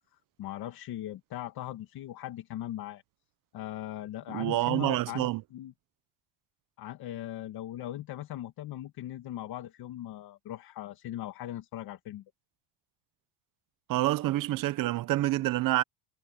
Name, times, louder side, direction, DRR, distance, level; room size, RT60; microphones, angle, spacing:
voice 1, 0.4-3.0 3.5-5.7 6.8-12.2, left 13 dB, 55° left, 2.1 m, -39 dB
voice 2, 4.3-5.4 13.9-15.8, right 16 dB, 50° right, 0.8 m, -27 dB
cardioid pair, 175°, 43 cm